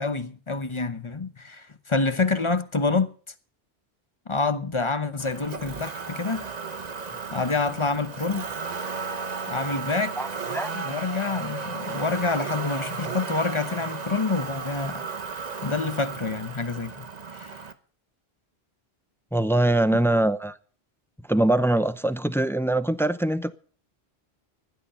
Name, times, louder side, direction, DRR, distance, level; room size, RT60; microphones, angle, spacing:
voice 1, 0.0-3.1 4.3-6.4 7.3-8.5 9.5-10.2 10.7-15.0 15.6-17.1 17.3-17.6, left 3 dB, 30° left, 0.9 m, -27 dB
Motor vehicle (road), 5.2-17.7, right 5 dB, 40° right, 1.1 m, -34 dB
voice 2, 19.3-20.5 21.3-23.5, right 1 dB, 5° left, 0.5 m, -22 dB
16.0 x 11.5 x 5.6 m
omnidirectional pair, 1.1 m